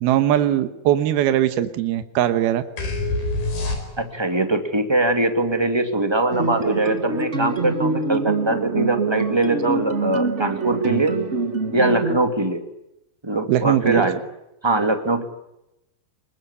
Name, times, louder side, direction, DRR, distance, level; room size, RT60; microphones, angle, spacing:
voice 1, 0.0-2.6 13.5-14.1, right 12 dB, 85° right, 10 dB, 3.1 m, -20 dB
sound 1, 2.8-4.3, left 2 dB, 70° left, 6.9 m, -25 dB
voice 2, 4.0-11.2 11.7-12.6 13.2-14.2 14.6-15.2, right 2 dB, 10° right, 6 dB, 1.9 m, -22 dB
sound 2, 6.3-12.2, right 3 dB, 55° right, 0.7 m, -25 dB
25.5 x 22.0 x 9.8 m, 0.87 s
omnidirectional pair, 4.4 m